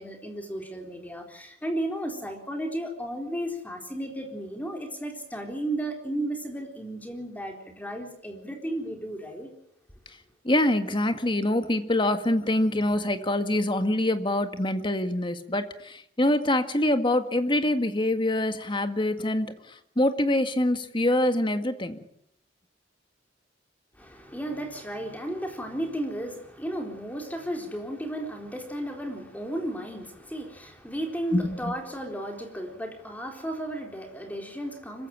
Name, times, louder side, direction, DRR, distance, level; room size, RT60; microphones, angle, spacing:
voice 1, 0.0-9.5 24.0-35.1, right 1 dB, 10° left, 4.1 m, -34 dB
voice 2, 10.5-19.5 20.0-22.0 31.3-31.7, left 1 dB, 25° left, 1.9 m, -25 dB
25.5 x 15.5 x 8.9 m
head